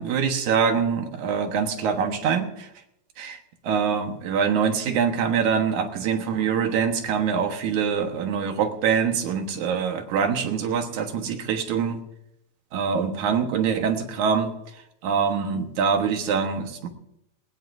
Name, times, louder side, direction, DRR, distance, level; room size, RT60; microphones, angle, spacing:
voice 1, 0.0-2.7 3.2-12.0 12.7-14.5 15.0-16.9, right 6 dB, 60° right, 5 dB, 2.5 m, -24 dB
20.5 x 19.5 x 2.7 m, 0.80 s
omnidirectional pair, 4.3 m